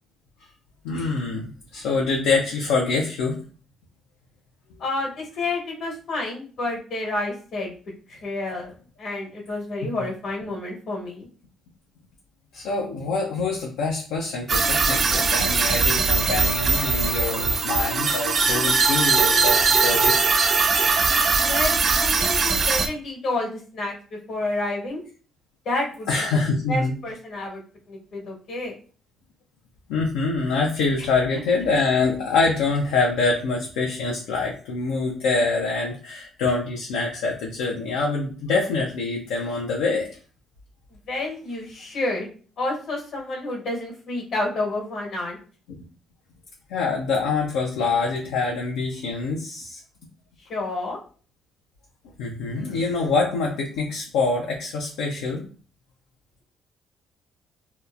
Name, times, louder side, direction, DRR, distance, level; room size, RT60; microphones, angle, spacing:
voice 1, 0.8-3.4 12.5-20.2 20.8-21.0 26.1-26.9 29.9-40.1 45.7-45.8 46.7-49.8 52.2-55.4, left 4 dB, 85° left, -1 dB, 0.4 m, -25 dB
voice 2, 4.8-7.7 8.1-11.3 21.4-25.0 25.6-26.4 26.7-27.6 27.9-28.7 41.1-42.3 42.6-45.4 50.4-51.0, left 2 dB, 70° left, -2 dB, 1.2 m, -29 dB
sound 1, 14.5-22.9, right 4 dB, 50° right, 0.4 m, -20 dB
2.8 x 2.1 x 2.3 m, 0.40 s
supercardioid pair, 60°, 0 cm